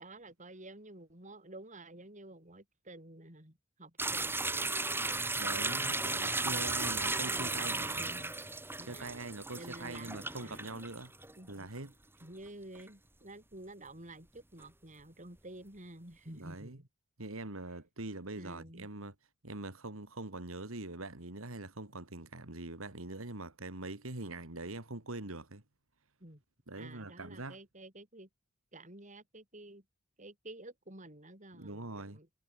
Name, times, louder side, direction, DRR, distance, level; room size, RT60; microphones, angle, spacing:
voice 1, 0.0-6.0 6.4-6.7 7.2-8.3 8.8-10.6 11.4-11.7 12.2-16.9 18.4-18.9 26.2-26.4 26.8-28.3 28.7-29.8 30.2-32.3, right 1 dB, 35° right, 6.1 m, -51 dB
sound 1, 4.0-11.3 11.8-11.9 12.7-12.9 14.6-14.7, right 3 dB, 10° right, 6.0 m, -35 dB
voice 2, 5.4-8.1 8.8-11.1 11.5-11.9 16.4-16.8 17.2-19.1 19.4-25.6 26.7-27.6 31.5-32.2, right 2 dB, 80° right, 2.6 m, -43 dB
head